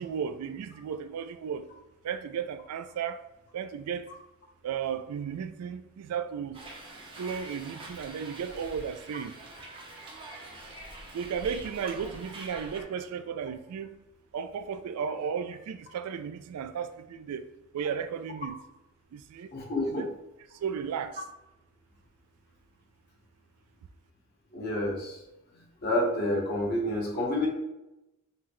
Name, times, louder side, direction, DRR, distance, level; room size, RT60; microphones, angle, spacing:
voice 1, 0.0-1.7 2.0-3.2 3.5-4.1 4.6-6.6 7.2-9.4 11.1-13.9 14.3-17.5 17.7-18.6 19.1-19.5 19.8-20.1 20.6-21.2, right 7 dB, 90° right, 0.3 m, -34 dB
Hiss, 6.5-12.8, right 2 dB, 25° right, 0.6 m, -45 dB
voice 2, 19.5-20.1 24.5-25.2 25.8-27.5, left 1 dB, 45° left, 1.0 m, -29 dB
5.6 x 2.1 x 3.0 m
head